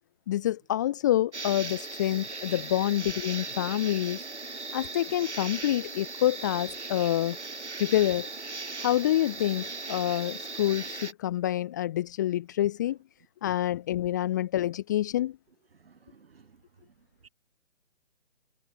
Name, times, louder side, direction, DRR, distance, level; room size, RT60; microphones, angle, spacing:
voice 1, 0.3-4.2 4.7-7.4 7.8-8.3 8.8-13.0 13.4-15.4, left 13 dB, 15° left, 0.8 m, -27 dB
sound 1, 1.3-11.1, right 3 dB, 70° right, 5.5 m, -38 dB
voice 2, 15.8-16.6 17.2-17.3, right 5 dB, 55° right, 3.3 m, -57 dB
figure-of-eight pair, 140°, 36 cm